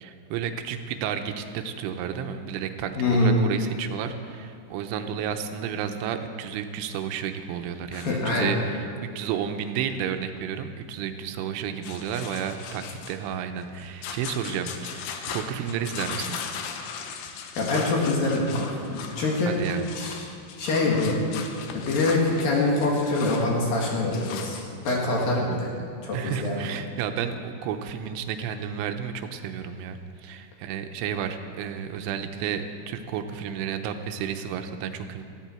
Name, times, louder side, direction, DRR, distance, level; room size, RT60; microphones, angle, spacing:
voice 1, 0.0-8.9 9.2-16.4 19.5-19.9 26.1-35.2, right 8 dB, 90° right, 7 dB, 3.2 m, -32 dB
voice 2, 3.0-3.4 7.9-8.6 17.6-19.5 19.9-20.2 20.6-21.2 21.7-24.6 24.8-25.7 26.0-26.6, left 2 dB, 55° left, -2 dB, 3.0 m, -24 dB
sound 1, 11.8-25.1, left 6 dB, 75° left, 2.5 m, -38 dB
18.0 x 14.5 x 4.4 m, 2.4 s
omnidirectional pair, 5.6 m